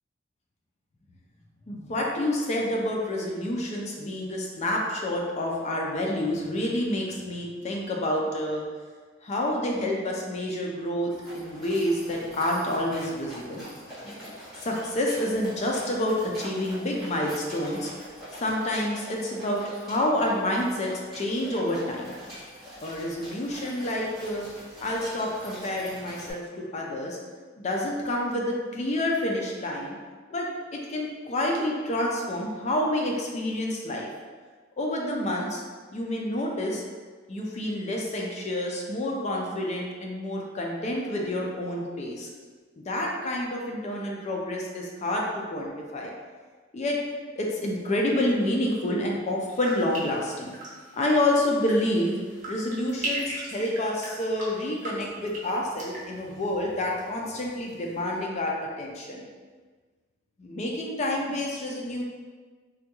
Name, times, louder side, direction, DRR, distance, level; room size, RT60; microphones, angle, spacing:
voice 1, 1.7-8.7 9.2-13.7 14.6-17.9 18.3-22.1 22.8-24.5 24.8-27.2 27.6-30.0 30.3-30.5 30.7-34.1 34.8-35.6 35.9-36.8 37.3-42.3 42.8-46.1 46.7-47.0 47.4-50.5 50.9-52.2 52.5-59.2 60.4-62.0, left 1 dB, 35° left, -1 dB, 0.4 m, -28 dB
sound 1, 11.1-26.3, equal, ahead, 1.4 m, -44 dB
sound 2, 49.5-57.4 57.7-58.2, right 1 dB, 40° right, 0.8 m, -39 dB
3.4 x 2.2 x 2.9 m, 1.5 s
head